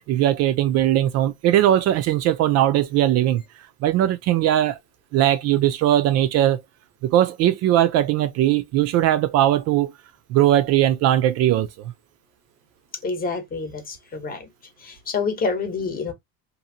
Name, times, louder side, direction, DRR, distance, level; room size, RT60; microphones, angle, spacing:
voice 1, 0.1-3.4 3.8-4.8 5.1-6.6 7.0-9.9 10.3-11.9, right 12 dB, 50° right, 0.4 m, -19 dB
voice 2, 13.0-14.5 14.8-16.1, left 4 dB, 30° left, 0.8 m, -27 dB
2.8 x 2.5 x 2.6 m
cardioid pair, 140°, 32 cm